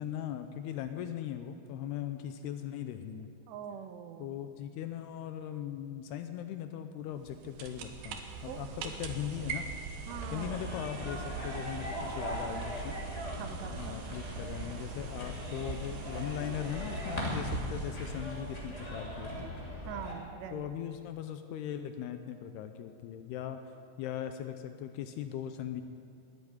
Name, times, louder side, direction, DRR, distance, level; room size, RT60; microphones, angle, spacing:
voice 1, 0.0-3.3 4.2-9.7 10.3-13.0 13.8-19.6 20.5-23.6 24.0-25.8, left 10 dB, 80° left, 8 dB, 2.5 m, -39 dB
voice 2, 3.5-4.4 8.5-8.9 10.1-10.6 13.4-14.0 19.9-20.7, right 9 dB, 85° right, 8 dB, 2.9 m, -43 dB
sound 1, 7.1-18.9, right 5 dB, 70° right, 2.5 m, -43 dB
sound 2, 10.1-20.1, equal, 10° left, 2.0 m, -39 dB
13.0 x 11.0 x 9.4 m, 2.3 s
omnidirectional pair, 5.0 m